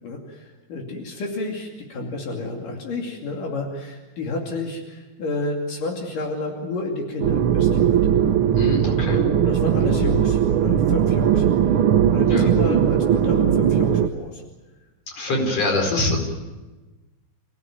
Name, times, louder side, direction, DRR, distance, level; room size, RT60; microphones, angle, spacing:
voice 1, 0.0-8.0 8.8-14.4 15.3-15.4, left 2 dB, 80° left, 0 dB, 4.3 m, -31 dB
sound 1, 7.2-14.1, right 9 dB, 85° right, 1.1 m, -19 dB
voice 2, 8.5-9.2 12.3-12.5 15.2-16.2, left 1 dB, 50° left, 2 dB, 5.8 m, -23 dB
29.5 x 17.0 x 9.4 m, 1.2 s
omnidirectional pair, 3.7 m